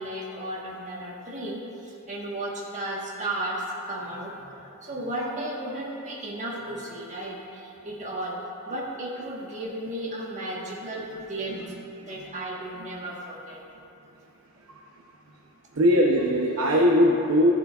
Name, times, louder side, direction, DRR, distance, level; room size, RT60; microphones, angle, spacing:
voice 1, 0.0-8.4 8.7-13.6, right 1 dB, 35° right, -3 dB, 1.3 m, -34 dB
voice 2, 14.5-15.4 15.7-17.5, equal, 75° right, -1 dB, 0.7 m, -22 dB
14.5 x 7.1 x 2.4 m, 2.8 s
head